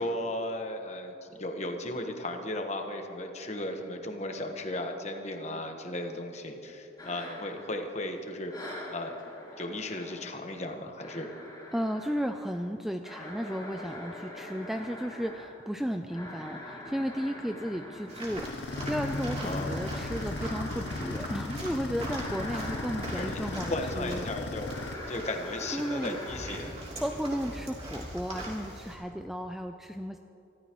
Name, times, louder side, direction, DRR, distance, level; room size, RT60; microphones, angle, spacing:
voice 1, 0.0-8.5 8.9-9.2 9.6-11.3 19.4-19.8 23.1-24.7 25.1-26.8, left 1 dB, 35° left, 4 dB, 1.2 m, -35 dB
sound 1, 7.0-8.2 8.5-26.6, left 1 dB, 20° left, 3.6 m, -44 dB
voice 2, 11.7-24.3 25.7-26.2 27.0-30.2, equal, ahead, 5 dB, 0.3 m, -34 dB
sound 2, 18.1-28.9, right 1 dB, 35° right, 3.1 m, -41 dB
sound 3, 18.4-24.9, left 3 dB, 55° left, 0.5 m, -37 dB
24.5 x 14.0 x 3.0 m, 2.9 s
head